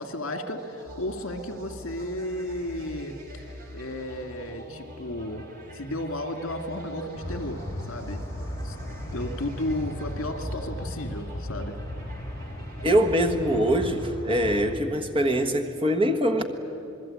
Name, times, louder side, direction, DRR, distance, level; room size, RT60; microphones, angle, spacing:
voice 1, 0.0-5.5 5.7-8.2 8.6-8.8 9.1-11.8, left 1 dB, 75° left, 6 dB, 2.3 m, -33 dB
sound 1, 0.6-14.2, equal, 40° right, 2.6 m, -44 dB
sound 2, 7.2-14.7, left 1 dB, 20° left, 4.3 m, -36 dB
voice 2, 12.8-16.4, equal, 25° right, 4 dB, 1.5 m, -23 dB
27.5 x 21.0 x 8.8 m, 2.7 s
head